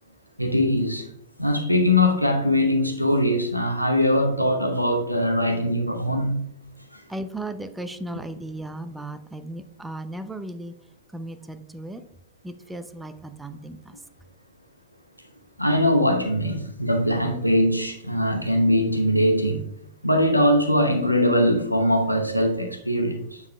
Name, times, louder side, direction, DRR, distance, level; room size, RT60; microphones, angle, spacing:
voice 1, 0.4-1.0 1.4-6.5 6.9-7.0 8.1-8.2 15.6-19.7 20.0-23.4, left 1 dB, 90° left, 0.8 m, -21 dB
voice 2, 7.1-10.7 11.1-12.0 12.4-14.0, right 1 dB, 5° right, 0.5 m, -36 dB
8.0 x 7.2 x 2.2 m
figure-of-eight pair, 90°, 0 cm